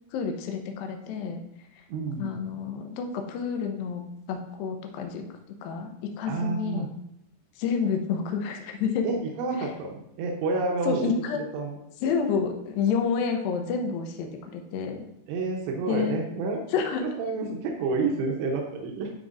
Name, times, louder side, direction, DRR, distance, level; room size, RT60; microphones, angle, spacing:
voice 1, 0.1-1.4 1.8-1.9 2.2-5.3 5.6-6.9 7.6-9.1 9.6-9.7 10.8-11.4 12.0-15.1 15.9-16.2 16.7-17.1, left 6 dB, 75° left, 3 dB, 2.3 m, -29 dB
voice 2, 1.9-2.4 6.3-6.9 9.0-11.1 11.5-11.8 15.3-16.6 17.2-19.1, right 3 dB, 85° right, 1 dB, 3.0 m, -29 dB
12.0 x 4.5 x 2.5 m, 0.78 s
omnidirectional pair, 4.9 m